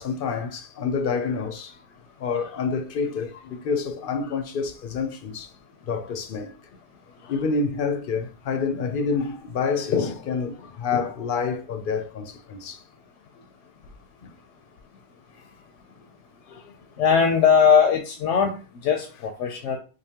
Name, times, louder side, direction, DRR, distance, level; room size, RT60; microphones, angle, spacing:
voice 1, 0.0-1.7 2.2-5.5 5.9-6.5 7.2-12.8 14.2-14.3 16.5-16.7, left 5 dB, 55° left, 0.7 m, -28 dB
voice 2, 17.0-18.5 18.8-19.8, left 6 dB, 85° left, 0.9 m, -19 dB
5.2 x 2.1 x 2.8 m
omnidirectional pair, 1.2 m